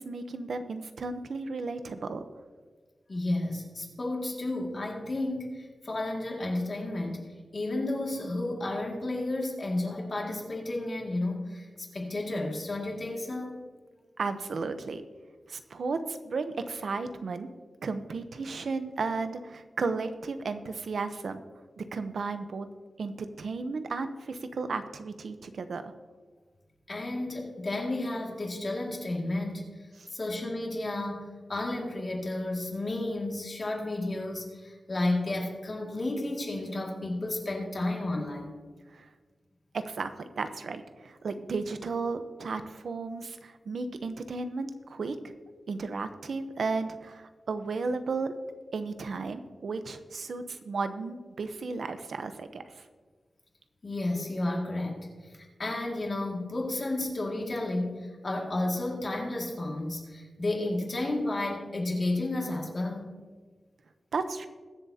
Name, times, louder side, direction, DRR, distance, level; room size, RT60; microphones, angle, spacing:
voice 1, 0.0-2.2 14.2-15.0 15.5-17.5 17.8-21.4 21.8-22.7 23.0-25.9 30.0-30.1 38.9-39.1 39.7-45.3 45.7-48.3 48.7-52.8 64.1-64.5, right 4 dB, 75° right, 9 dB, 0.8 m, -34 dB
voice 2, 3.1-7.2 7.5-13.6 26.9-29.8 30.1-38.5 53.8-63.1, left 2 dB, 35° left, -1 dB, 2.2 m, -32 dB
21.5 x 7.6 x 2.8 m, 1.4 s
wide cardioid pair, 160°, 0 cm